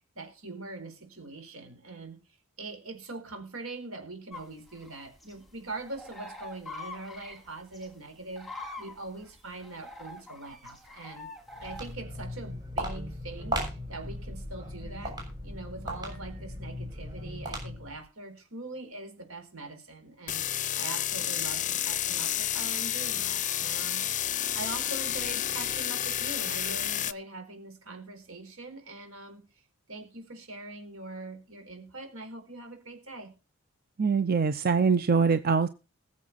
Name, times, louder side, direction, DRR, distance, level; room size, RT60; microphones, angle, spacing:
voice 1, 0.1-2.2 2.6-8.5 8.8-11.3 11.6-15.2 15.4-20.4 20.8-29.4 29.9-33.3, right 2 dB, 85° right, 6 dB, 4.5 m, -42 dB
sound 1, 4.3-11.9, left 2 dB, ahead, 3.2 m, -45 dB
Walk footsteps, 11.5-18.0, equal, 20° right, 6.7 m, -37 dB
sound 2, 20.3-27.1, left 11 dB, 35° left, 0.6 m, -30 dB
voice 2, 34.0-35.7, right 5 dB, 45° right, 11 dB, 0.7 m, -23 dB
20.5 x 7.4 x 4.1 m, 0.32 s
head